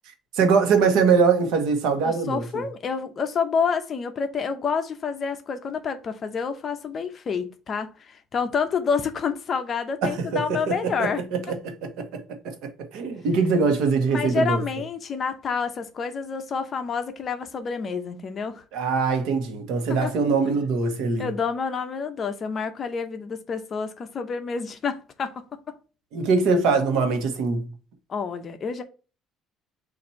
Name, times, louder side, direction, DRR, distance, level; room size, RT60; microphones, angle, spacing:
voice 1, 0.3-2.4 10.0-14.6 18.7-21.3 26.1-27.6, right 5 dB, 75° right, 1.0 m, -23 dB
voice 2, 2.0-11.2 14.1-18.6 19.9-20.1 21.2-25.7 28.1-28.8, left 5 dB, 35° left, 0.6 m, -28 dB
4.2 x 2.6 x 4.2 m
cardioid pair, 150°, 0 cm